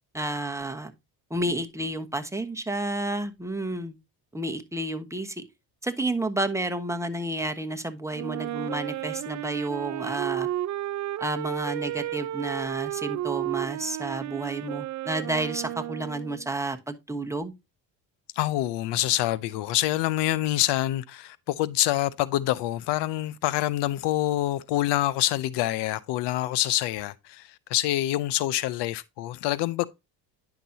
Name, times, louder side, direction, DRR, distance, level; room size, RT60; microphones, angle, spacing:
voice 1, 0.1-0.9 1.3-4.0 4.3-5.4 5.8-10.5 11.2-17.5, right 2 dB, 5° right, 1.2 m, -31 dB
Wind instrument woodwind instrument, 8.1-16.5, right 13 dB, 45° right, 0.5 m, -33 dB
voice 2, 18.4-29.9, left 14 dB, 80° left, 0.7 m, -26 dB
10.0 x 6.0 x 2.7 m
supercardioid pair, 80°, 41 cm